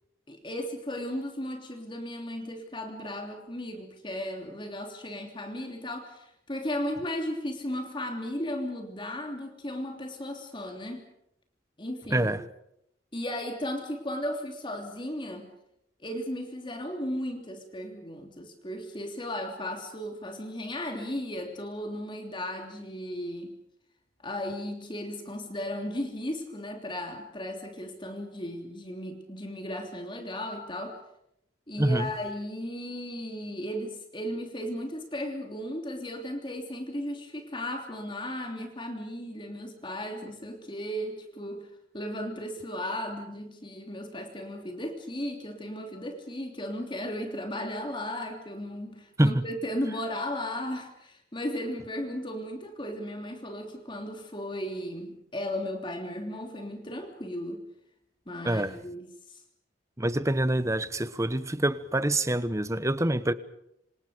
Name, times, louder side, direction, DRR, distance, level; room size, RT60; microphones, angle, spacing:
voice 1, 0.3-11.1 11.8-12.3 13.1-15.5 16.0-23.5 24.2-31.0 31.7-41.7 41.9-57.6 58.3-59.4, left 1 dB, 25° left, 3.2 m, -35 dB
voice 2, 12.1-12.4 31.8-32.1 49.2-49.4 58.4-58.8 60.0-63.3, right 1 dB, 15° right, 1.1 m, -26 dB
27.5 x 26.5 x 5.2 m
head